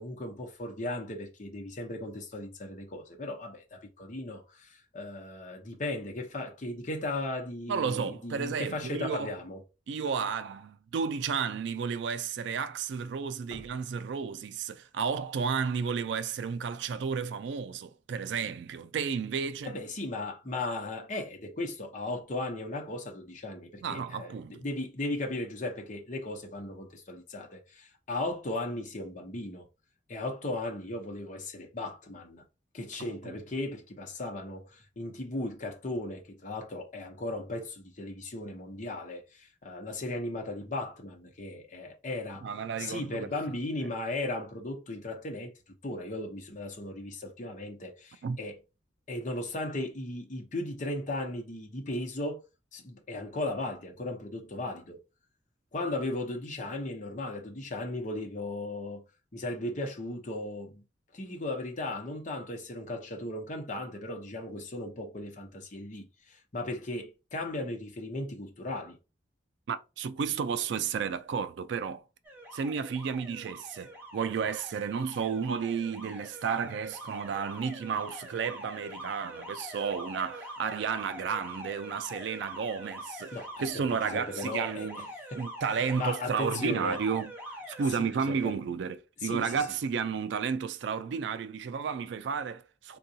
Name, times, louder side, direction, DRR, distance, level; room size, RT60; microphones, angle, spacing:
voice 1, 0.0-9.6 13.5-13.6 19.6-29.7 30.1-32.4 32.7-42.5 42.8-45.5 45.8-48.6 49.1-52.4 52.7-55.0 55.7-59.0 59.3-60.8 61.1-69.0 83.3-83.8 84.1-85.0 85.3-85.4 85.7-87.0 88.0-88.5 89.2-89.6, left 2 dB, 45° left, 0.8 m, -36 dB
voice 2, 7.7-9.3 9.9-19.7 23.8-24.7 33.2-33.3 42.4-43.3 48.2-48.4 69.7-72.0 72.5-85.1 85.3-93.0, right 6 dB, 70° right, 0.3 m, -32 dB
Alarm, 72.2-87.9, equal, 10° right, 0.8 m, -44 dB
3.7 x 2.3 x 2.7 m
head